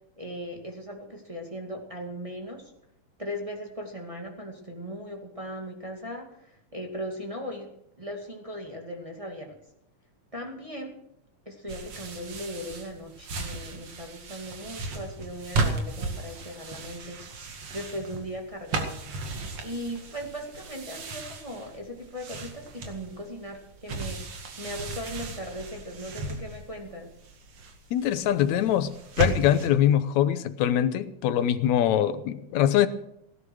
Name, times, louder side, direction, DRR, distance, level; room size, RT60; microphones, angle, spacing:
voice 1, 0.2-2.7 3.2-9.6 10.3-11.0 11.5-19.0 19.6-27.1, equal, 10° right, 1.9 m, -38 dB
sound 1, 11.7-29.7, right 3 dB, 55° right, 2.9 m, -35 dB
voice 2, 27.9-32.9, left 11 dB, 70° left, 2.0 m, -23 dB
17.5 x 11.0 x 6.3 m
omnidirectional pair, 3.6 m